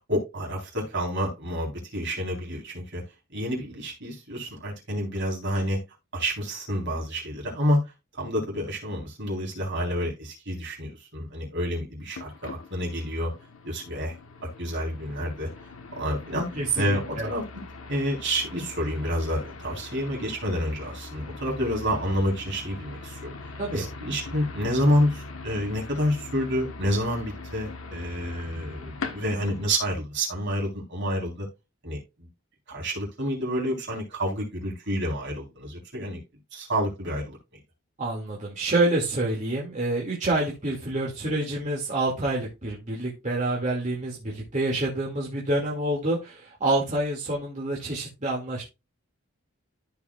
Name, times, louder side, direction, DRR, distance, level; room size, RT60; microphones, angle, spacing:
voice 1, 0.1-3.0 3.3-5.8 6.1-7.8 8.1-13.3 13.6-14.2 14.6-15.5 15.9-16.5 16.8-17.6 17.9-23.3 23.7-31.5 31.8-32.0 32.7-36.2 36.5-37.4, equal, 60° right, 4.0 m, -29 dB
sound 1, 12.1-29.7, left 3 dB, 75° left, 1.3 m, -41 dB
voice 2, 16.6-17.3 23.6-23.9 38.0-48.6, right 2 dB, 35° right, 2.2 m, -27 dB
14.5 x 4.9 x 2.4 m
head